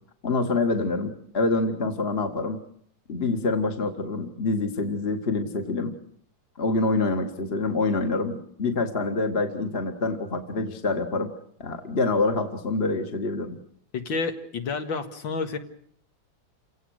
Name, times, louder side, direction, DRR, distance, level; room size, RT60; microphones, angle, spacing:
voice 1, 0.2-2.6 3.1-5.9 6.6-11.3 11.6-13.6, left 3 dB, 30° left, 5 dB, 2.0 m, -26 dB
voice 2, 13.9-15.6, left 4 dB, 75° left, 7 dB, 2.6 m, -29 dB
29.0 x 17.5 x 6.5 m, 0.64 s
omnidirectional pair, 2.1 m